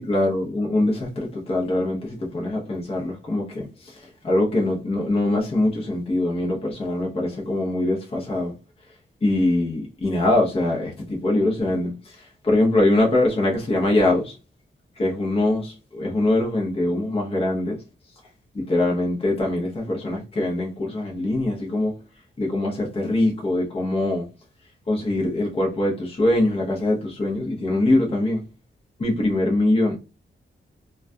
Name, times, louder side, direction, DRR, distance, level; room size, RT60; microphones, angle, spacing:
voice 1, 0.0-8.5 9.2-14.3 15.0-17.8 18.5-21.9 22.4-24.3 24.9-28.4 29.0-30.0, left 1 dB, 30° left, 0.7 m, -23 dB
2.3 x 2.2 x 2.5 m
wide cardioid pair, 145°, 21 cm